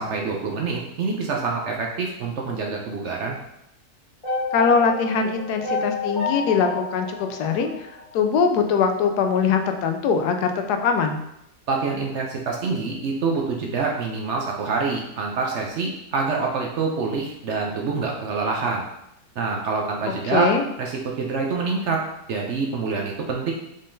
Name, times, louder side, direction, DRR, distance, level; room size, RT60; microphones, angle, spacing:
voice 1, 0.0-3.4 11.7-18.8 19.4-20.5 20.8-22.0 22.3-23.5, right 4 dB, 60° right, 0 dB, 0.8 m, -26 dB
sound 1, 4.2-8.4, left 3 dB, 20° left, 1.5 m, -30 dB
voice 2, 4.5-7.7 8.1-11.2 20.3-20.6, left 5 dB, 90° left, 6 dB, 1.1 m, -22 dB
5.4 x 3.5 x 2.6 m, 0.81 s
omnidirectional pair, 1.6 m